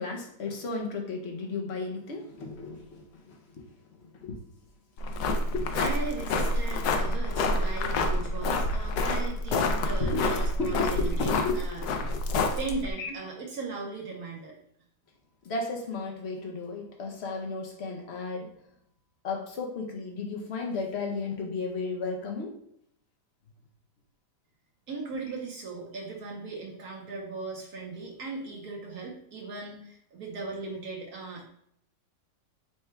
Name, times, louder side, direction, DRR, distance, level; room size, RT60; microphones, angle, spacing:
voice 1, 0.0-3.7 4.0-4.3 5.1-5.9 10.0-11.6 12.3-12.4 13.0-13.1 15.4-18.5 19.2-22.5, left 3 dB, 55° left, 1 dB, 0.7 m, -34 dB
sound 1, 5.0-12.9, left 2 dB, 70° left, 1.0 m, -28 dB
voice 2, 5.8-12.2 12.6-14.5 24.9-31.5, right 3 dB, 65° right, -1 dB, 1.2 m, -38 dB
4.4 x 2.3 x 4.4 m, 0.71 s
omnidirectional pair, 1.9 m